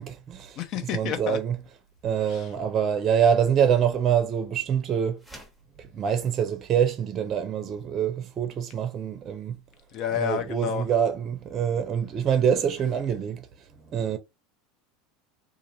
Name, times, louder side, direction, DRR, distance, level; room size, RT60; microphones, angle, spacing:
voice 1, 0.0-0.6 0.9-1.5 2.0-5.2 5.8-9.6 10.2-14.2, right 8 dB, 40° right, 0.5 m, -25 dB
voice 2, 0.6-1.4 2.3-2.5 9.9-10.9, left 9 dB, 55° left, 0.7 m, -30 dB
sound 1, 5.2-5.7, right 1 dB, ahead, 1.1 m, -47 dB
2.5 x 2.5 x 2.9 m
hypercardioid pair, 90°, 0 cm